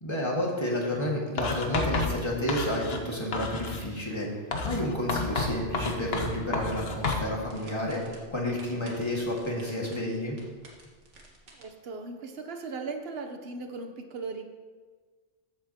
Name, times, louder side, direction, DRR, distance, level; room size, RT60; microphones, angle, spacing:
voice 1, 0.0-10.4, left 1 dB, 25° left, -3 dB, 1.9 m, -30 dB
Writing, 1.4-3.1 3.3-3.9 4.5-7.3, left 3 dB, 60° left, 1.2 m, -30 dB
sound 1, 5.8-11.6, right 1 dB, 85° right, 1.9 m, -51 dB
voice 2, 11.5-14.4, right 4 dB, 60° right, 6 dB, 1.0 m, -38 dB
14.0 x 8.2 x 2.9 m, 1.4 s
omnidirectional pair, 1.2 m